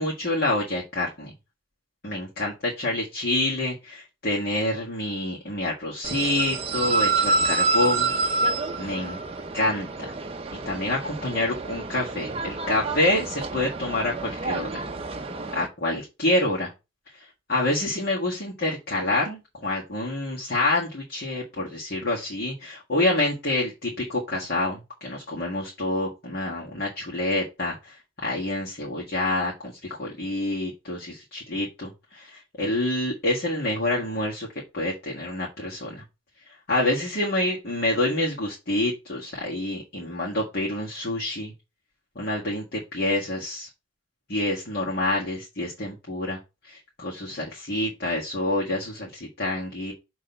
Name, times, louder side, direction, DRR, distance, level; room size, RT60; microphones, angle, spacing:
voice 1, 0.0-1.3 2.0-8.1 8.8-9.2 9.5-10.1 10.7-14.8 15.5-16.7 17.1-34.5 34.7-36.0 36.7-41.5 42.2-43.7 44.3-49.9, left 1 dB, 50° left, -4 dB, 1.8 m, -27 dB
sound 1, 6.0-15.7, right 3 dB, 25° right, 0.6 m, -28 dB
6.2 x 3.0 x 5.8 m, 0.26 s
head